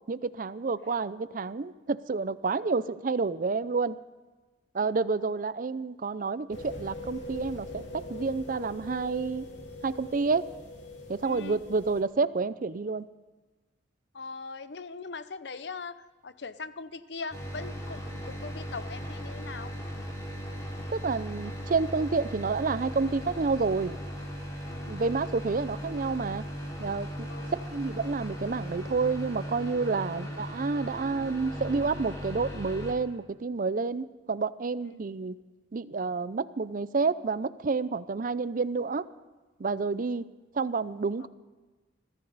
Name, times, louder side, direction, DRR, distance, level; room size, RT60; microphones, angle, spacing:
voice 1, 0.1-4.0 4.7-9.5 9.8-10.4 11.1-13.1 20.9-24.0 24.9-26.4 26.8-35.4 35.7-39.1 39.6-40.3 40.5-41.3, right 4 dB, 50° right, 16 dB, 0.5 m, -29 dB
sound 1, 6.5-12.0, left 2 dB, 85° left, 2.8 m, -42 dB
voice 2, 11.3-11.6 14.1-16.0 16.2-19.7 24.7-24.9 27.3-27.5 41.2-41.3, left 4 dB, 70° left, 14 dB, 0.7 m, -40 dB
sound 2, 17.3-32.9, equal, 20° left, 3.3 m, -38 dB
21.0 x 14.5 x 4.0 m, 1.3 s
head